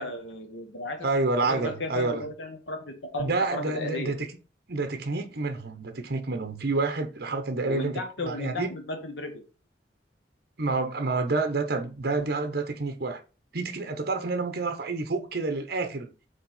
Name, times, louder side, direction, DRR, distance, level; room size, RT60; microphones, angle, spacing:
voice 1, 0.0-1.1 1.4-4.1 7.6-9.4, left 1 dB, 85° left, 1.3 m, -35 dB
voice 2, 1.0-2.2 3.2-4.2 4.7-8.7 10.6-13.2 13.5-16.1, right 3 dB, 60° right, 0.9 m, -28 dB
5.5 x 4.1 x 5.5 m
head